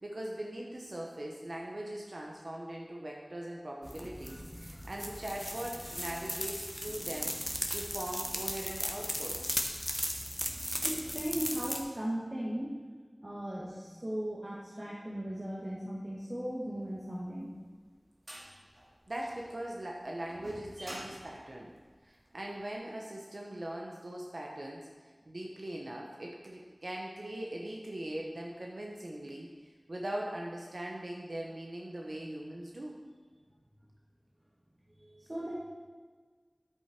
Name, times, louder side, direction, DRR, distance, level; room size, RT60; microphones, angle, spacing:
voice 1, 0.0-7.3 7.7-9.4 19.1-21.7 22.0-24.9 25.3-29.5 29.9-33.0, right 1 dB, 80° right, -1 dB, 1.0 m, -40 dB
sound 1, 3.8-11.8, equal, 5° left, 1.2 m, -37 dB
voice 2, 10.8-12.7 13.2-17.5 35.0-35.6, equal, 40° right, -6 dB, 1.9 m, -37 dB
sound 2, 17.2-22.5, equal, 60° right, 2.8 m, -49 dB
10.0 x 8.4 x 4.4 m, 1.5 s
wide cardioid pair, 45°, 0 cm